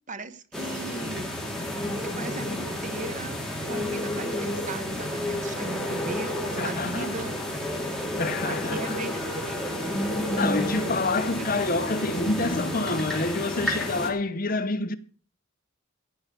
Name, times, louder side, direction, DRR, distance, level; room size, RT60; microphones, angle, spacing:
voice 1, 0.1-1.3 2.0-7.3 8.4-9.8 11.4-11.5, right 2 dB, 35° right, 0.9 m, -37 dB
sound 1, 0.5-14.1, left 1 dB, ahead, 2.6 m, -30 dB
voice 2, 6.6-7.1 8.2-9.0 10.4-15.0, left 3 dB, 40° left, 0.9 m, -27 dB
14.5 x 5.6 x 8.3 m
head